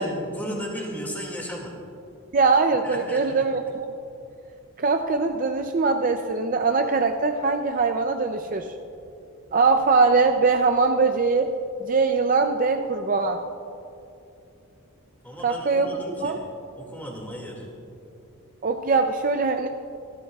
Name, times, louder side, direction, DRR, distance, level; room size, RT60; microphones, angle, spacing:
voice 1, 0.0-1.7 2.8-3.5 15.2-16.4 16.8-17.7, equal, 10° left, -1 dB, 2.1 m, -35 dB
voice 2, 2.3-3.9 4.8-8.7 9.5-11.5 11.8-13.4 15.4-15.9 16.2-16.4 18.6-19.7, right 4 dB, 40° right, 6 dB, 0.4 m, -22 dB
27.0 x 12.5 x 2.3 m, 2.7 s
head